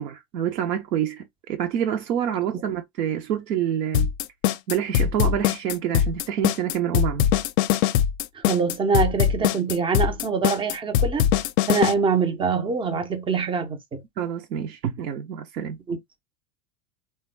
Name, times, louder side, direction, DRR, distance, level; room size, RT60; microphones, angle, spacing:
voice 1, 0.0-4.1 4.7-7.3 14.2-15.8, right 9 dB, 80° right, 0.7 m, -27 dB
sound 1, 3.9-11.9, left 10 dB, 55° left, 0.5 m, -21 dB
voice 2, 8.3-11.3 11.7-14.0 15.9-16.0, right 5 dB, 10° right, 0.4 m, -24 dB
3.4 x 2.2 x 3.1 m
hypercardioid pair, 85°, 48 cm